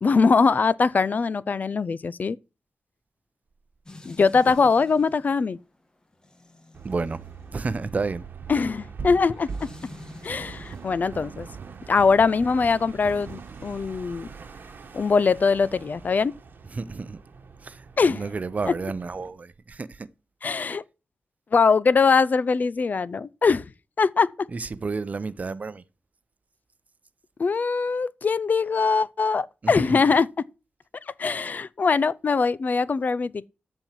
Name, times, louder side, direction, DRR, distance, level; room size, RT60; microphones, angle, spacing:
voice 1, 0.0-2.4 4.0-5.6 8.5-9.5 10.2-11.5 11.9-14.3 14.9-16.3 18.0-18.2 18.7-18.8 20.4-20.8 21.5-23.7 24.0-24.3 27.4-30.3 31.2-33.5, left 4 dB, 50° left, 0.6 m, -22 dB
sound 1, 3.9-11.1 13.0-14.4, left 2 dB, 20° left, 1.4 m, -49 dB
sound 2, 6.7-19.3, right 4 dB, 60° right, 1.7 m, -43 dB
voice 2, 6.8-7.3 7.5-8.2 16.7-17.2 17.6-20.1 24.5-25.8 29.6-30.0, right 4 dB, 40° right, 0.8 m, -31 dB
sound 3, 10.3-15.5, right 6 dB, 85° right, 0.8 m, -43 dB
13.5 x 4.5 x 7.5 m
wide cardioid pair, 120°, 4 cm